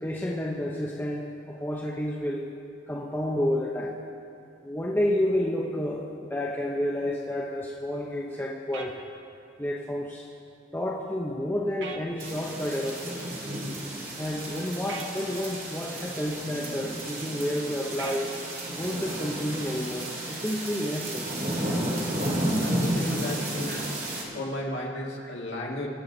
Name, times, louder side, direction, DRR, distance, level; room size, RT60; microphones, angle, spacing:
voice 1, 0.0-2.5 2.9-4.0 4.6-9.0 9.6-10.3 10.7-13.2 14.2-18.3 18.7-21.3 23.7-23.8, left 1 dB, 10° left, -3 dB, 0.8 m, -30 dB
sound 1, 8.7-8.9 11.8-12.0 14.9-15.1 18.0-18.2, right 5 dB, 65° right, 1.2 m, -38 dB
sound 2, 12.2-24.2, right 1 dB, 45° right, 2.3 m, -32 dB
voice 2, 22.0-23.9 24.3-25.9, left 1 dB, 70° left, -2 dB, 2.1 m, -35 dB
24.5 x 8.4 x 4.0 m, 2.5 s
head